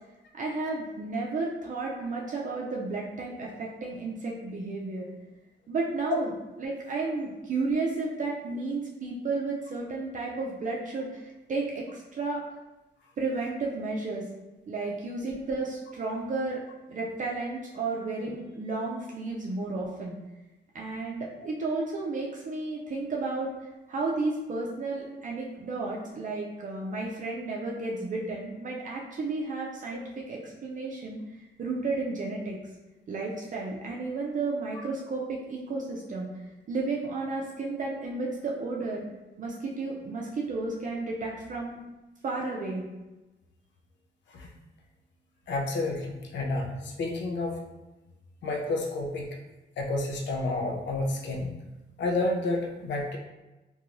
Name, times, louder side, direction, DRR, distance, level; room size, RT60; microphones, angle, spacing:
voice 1, 0.3-5.1 5.7-6.3 6.6-12.4 13.2-14.2 14.7-16.6 16.9-20.2 20.7-23.5 23.9-31.2 31.6-32.6 33.1-36.3 36.7-39.0 39.4-41.8 42.2-42.8, right 3 dB, 45° right, -2 dB, 0.4 m, -32 dB
voice 2, 45.5-47.6 48.4-49.3 49.8-51.5 52.0-53.2, left 2 dB, 80° left, 0 dB, 0.5 m, -30 dB
2.9 x 2.2 x 2.5 m, 1.1 s
cardioid pair, 120°, 19 cm